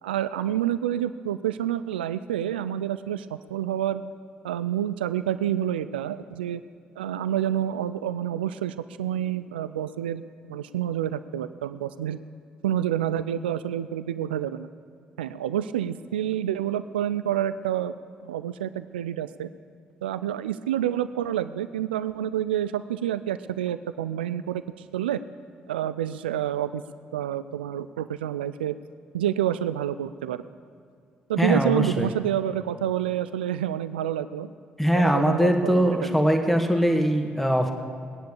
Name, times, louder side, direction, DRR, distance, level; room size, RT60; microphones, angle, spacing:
voice 1, 0.0-4.0 4.4-6.6 7.0-12.2 12.6-14.7 15.2-17.9 18.2-19.5 20.0-24.6 24.9-25.2 25.7-26.8 27.1-28.8 29.1-30.5 31.3-34.5 34.9-36.2, right 11 dB, 85° right, 13 dB, 0.4 m, -28 dB
voice 2, 31.4-32.1 34.8-37.7, equal, 5° left, 4 dB, 2.0 m, -22 dB
19.5 x 10.5 x 7.0 m, 2.3 s
figure-of-eight pair, 45°, 5 cm